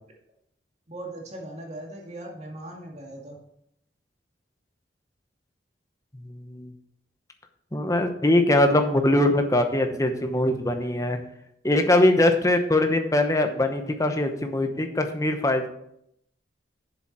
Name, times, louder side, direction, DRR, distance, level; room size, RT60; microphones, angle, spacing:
voice 1, 0.9-3.4, right 1 dB, 35° right, -1 dB, 2.2 m, -39 dB
voice 2, 6.3-6.7 7.7-11.2 11.6-15.7, left 1 dB, 15° left, 6 dB, 0.9 m, -22 dB
7.5 x 7.0 x 6.0 m, 0.75 s
head